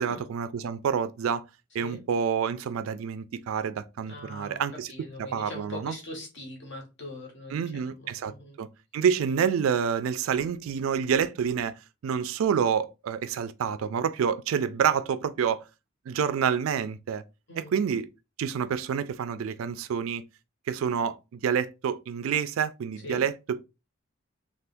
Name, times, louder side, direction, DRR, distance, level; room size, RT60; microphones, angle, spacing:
voice 1, 0.0-1.4 1.7-4.9 5.2-5.9 7.5-8.7 8.9-15.6 16.1-17.2 17.6-18.1 18.4-20.2 20.7-23.6, right 7 dB, 85° right, 0.3 m, -28 dB
voice 2, 4.1-4.6 4.9-8.6 17.5-17.7 23.0-23.2, left 1 dB, 60° left, 1.3 m, -41 dB
3.5 x 2.5 x 2.5 m
head